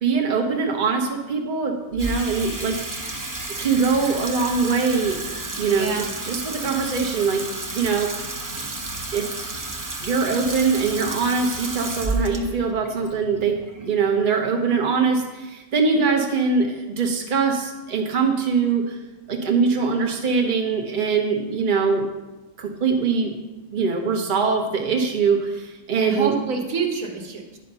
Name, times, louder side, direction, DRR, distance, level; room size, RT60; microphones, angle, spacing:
voice 1, 0.0-2.8 3.6-5.2 5.6-7.4 7.7-8.2 9.1-9.3 10.0-19.0 19.3-22.0 22.6-23.3 23.7-26.4, right 5 dB, 40° right, 2 dB, 1.1 m, -22 dB
Water tap faucet / Sink (filling or washing), 1.9-14.3, right 2 dB, 20° right, 0.5 m, -32 dB
voice 2, 5.7-6.1 26.0-27.6, right 5 dB, 85° right, 3 dB, 1.5 m, -27 dB
9.8 x 4.9 x 5.5 m, 1.1 s
omnidirectional pair, 1.4 m